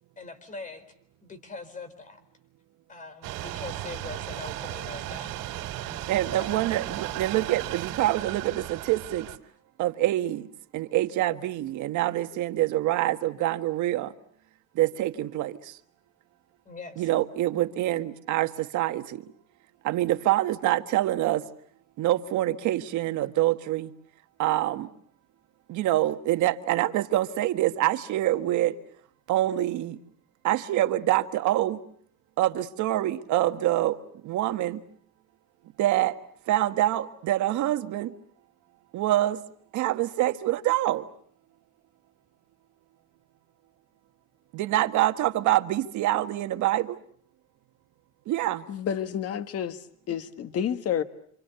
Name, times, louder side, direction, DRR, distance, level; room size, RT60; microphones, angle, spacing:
voice 1, 0.2-0.8 1.2-2.2 2.9-5.3 6.4-6.5 16.7-17.1, left 4 dB, 25° left, 3.9 m, -42 dB
sound 1, 3.2-9.4, right 13 dB, 85° right, 3.3 m, -35 dB
voice 2, 6.1-9.3 9.8-14.1 14.8-15.8 17.0-19.3 19.8-21.4 22.0-23.9 24.4-24.9 25.7-28.8 29.3-30.0 30.4-31.8 32.4-34.8 35.8-36.2 36.5-38.1 38.9-39.4 39.7-41.0 44.5-47.0 48.3-48.7, right 14 dB, 65° right, 1.6 m, -26 dB
voice 3, 48.7-49.8 50.1-51.0, left 9 dB, 50° left, 1.6 m, -29 dB
28.0 x 27.0 x 6.9 m
cardioid pair, 145°, 32 cm